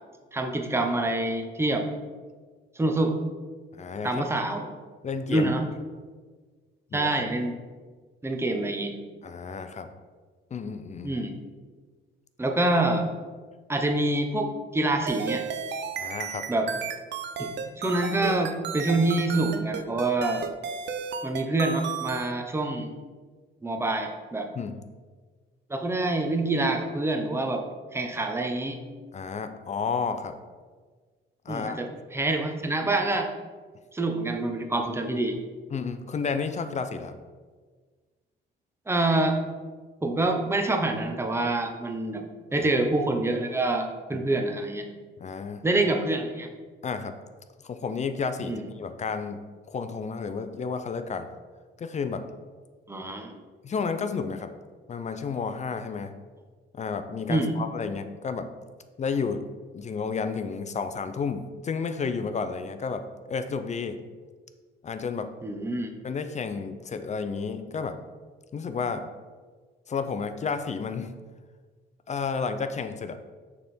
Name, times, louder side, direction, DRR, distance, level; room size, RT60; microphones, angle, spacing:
voice 1, 0.3-1.9 2.8-3.2 4.0-4.7 5.3-5.6 6.9-7.6 8.2-9.0 11.0-11.3 12.4-13.1 13.7-15.4 16.5-16.7 17.4-20.5 21.2-22.9 23.6-24.5 25.7-27.6 27.9-28.8 31.5-33.3 33.9-35.4 38.9-39.4 40.0-44.8 45.6-46.5 48.4-48.6 52.9-53.3 57.3-57.6 65.4-65.9, right 2 dB, 10° right, 4 dB, 0.7 m, -26 dB
voice 2, 3.7-4.2 5.0-5.5 6.9-7.1 9.2-9.9 10.5-11.2 16.0-16.4 24.5-24.8 29.1-30.4 31.5-31.8 34.7-34.8 35.7-37.2 42.6-42.7 44.1-44.2 45.2-45.6 46.8-47.2 47.6-49.4 49.7-51.3 51.8-52.3 53.6-54.5 54.9-56.2 56.7-58.5 59.0-59.5 59.7-64.0 64.8-65.3 66.0-68.0 68.5-69.0 69.9-71.1 72.1-73.2, left 5 dB, 35° left, 9 dB, 0.4 m, -31 dB
sound 1, 15.1-22.3, right 6 dB, 65° right, 0.5 m, -33 dB
6.5 x 3.5 x 4.2 m, 1.4 s
cardioid pair, 90°, 20 cm